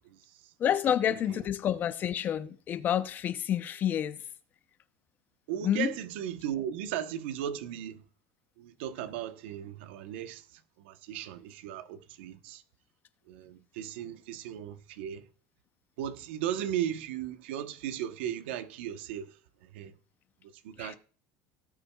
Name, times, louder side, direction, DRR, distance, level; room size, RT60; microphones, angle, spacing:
voice 1, 0.6-4.2 5.6-6.0 20.8-21.0, left 10 dB, 30° left, 0.6 m, -29 dB
voice 2, 5.5-8.0 8.6-12.6 13.3-15.2 16.0-19.3 19.7-19.9 20.6-21.0, right 10 dB, 90° right, 1.0 m, -36 dB
17.5 x 8.8 x 2.3 m
cardioid pair, 155°, 6 cm